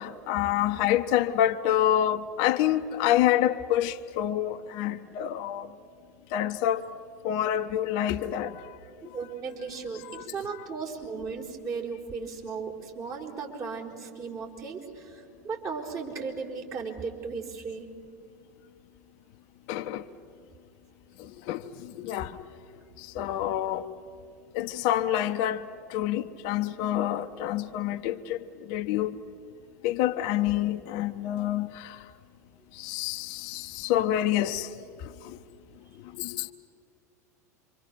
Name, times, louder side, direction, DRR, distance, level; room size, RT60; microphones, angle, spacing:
voice 1, 0.0-5.7 6.3-6.9 7.2-8.6 9.9-10.6 19.7-20.0 21.2-22.4 23.0-23.9 24.5-29.2 29.8-32.0 32.7-34.7 35.2-35.4 36.2-36.5, left 12 dB, 50° left, 0.9 m, -27 dB
voice 2, 9.0-17.9, right 5 dB, 35° right, 4.7 m, -36 dB
27.0 x 25.0 x 6.9 m
figure-of-eight pair, 85°, 9 cm